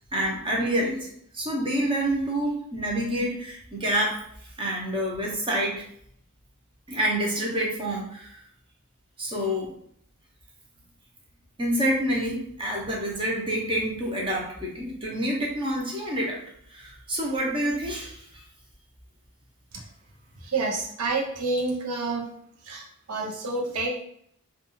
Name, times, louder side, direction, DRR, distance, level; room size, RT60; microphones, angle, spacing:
voice 1, 0.1-5.8 6.9-8.4 9.2-9.7 11.6-16.4 16.7-18.4, right 1 dB, 25° right, -2 dB, 0.6 m, -28 dB
voice 2, 20.4-22.3 22.6-24.0, right 3 dB, 80° right, 0 dB, 0.6 m, -28 dB
2.3 x 2.3 x 3.0 m, 0.68 s
head